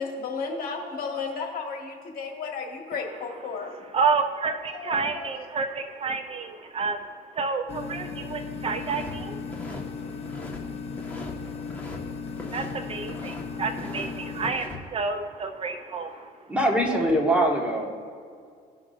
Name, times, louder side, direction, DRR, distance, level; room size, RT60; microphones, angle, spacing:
voice 1, 0.0-3.7 4.7-5.2, left 5 dB, 60° left, 1 dB, 1.7 m, -33 dB
voice 2, 3.3-12.2 12.5-16.5, right 4 dB, 35° right, 6 dB, 0.6 m, -31 dB
sound 1, 7.7-14.5, left 5 dB, 35° left, 0.7 m, -36 dB
sound 2, 8.7-9.1 9.4-10.6 10.9-12.0 12.3-13.4 13.7-14.8, left 2 dB, 10° left, 1.4 m, -40 dB
voice 3, 16.5-17.8, right 1 dB, 5° right, -2 dB, 1.6 m, -22 dB
17.0 x 6.0 x 2.6 m, 2.2 s
cardioid pair, 110°, 17 cm